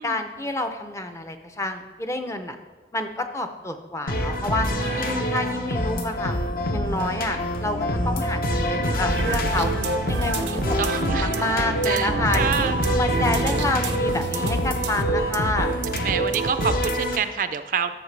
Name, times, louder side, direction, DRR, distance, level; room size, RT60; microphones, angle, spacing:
voice 1, 0.0-2.6 2.9-4.7 4.9-6.4 6.7-9.7 10.1-12.7 13.0-15.7, left 2 dB, 15° left, 6 dB, 0.5 m, -28 dB
sound 1, 4.1-17.2, equal, 55° left, 0.7 m, -26 dB
voice 2, 4.8-5.4 10.8-11.5 11.8-12.8 16.0-17.9, right 7 dB, 50° right, 10 dB, 0.4 m, -28 dB
sound 2, 6.6-16.3, equal, 80° left, 0.9 m, -33 dB
sound 3, 9.1-17.1, right 3 dB, 90° right, 0.6 m, -29 dB
13.0 x 6.6 x 3.3 m, 1.3 s
head